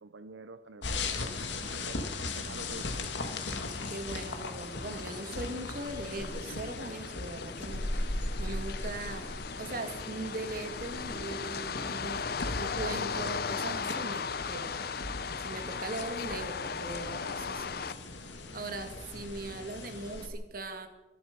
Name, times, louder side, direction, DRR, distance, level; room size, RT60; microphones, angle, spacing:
voice 1, 0.0-2.0 2.3-3.3, right 3 dB, 90° right, 12 dB, 0.7 m, -48 dB
sound 1, 0.8-20.3, left 2 dB, 80° left, 2.0 m, -38 dB
voice 2, 1.0-1.7 3.9-12.2 12.6-14.7 15.4-17.9 18.5-20.9, right 2 dB, 50° right, 7 dB, 2.0 m, -40 dB
sound 2, 2.6-17.9, left 5 dB, 55° left, 0.7 m, -38 dB
23.5 x 11.5 x 5.2 m, 1.1 s
head